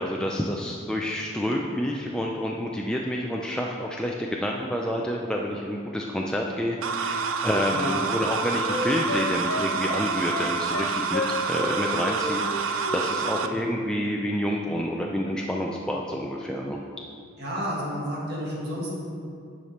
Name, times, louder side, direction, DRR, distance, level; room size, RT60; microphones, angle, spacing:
voice 1, 0.0-16.8, equal, 5° left, -2 dB, 0.3 m, -29 dB
sound 1, 6.8-13.5, right 5 dB, 65° right, 0.4 m, -28 dB
Wind instrument woodwind instrument, 7.0-11.7 12.0-13.0 13.3-13.5, left 1 dB, 70° left, 1.1 m, -32 dB
voice 2, 17.4-18.9, equal, 50° right, -5 dB, 1.7 m, -31 dB
9.3 x 5.1 x 4.2 m, 2.4 s
head